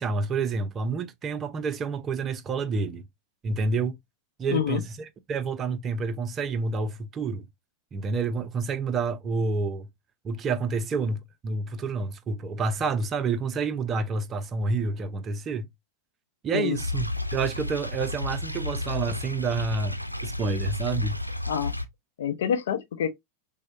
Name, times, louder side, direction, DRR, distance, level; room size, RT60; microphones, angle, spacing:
voice 1, 0.0-3.0 3.4-4.0 4.4-4.8 5.3-7.5 7.9-9.9 10.2-15.7 16.4-20.0 20.2-21.2, right 4 dB, 25° right, 0.4 m, -28 dB
voice 2, 4.5-4.8 16.5-16.8 21.5-21.7 22.2-23.1, left 8 dB, 60° left, 0.6 m, -27 dB
sound 1, 16.7-21.9, left 2 dB, 90° right, 0.4 m, -32 dB
6.1 x 2.1 x 2.5 m
figure-of-eight pair, 90°, 0 cm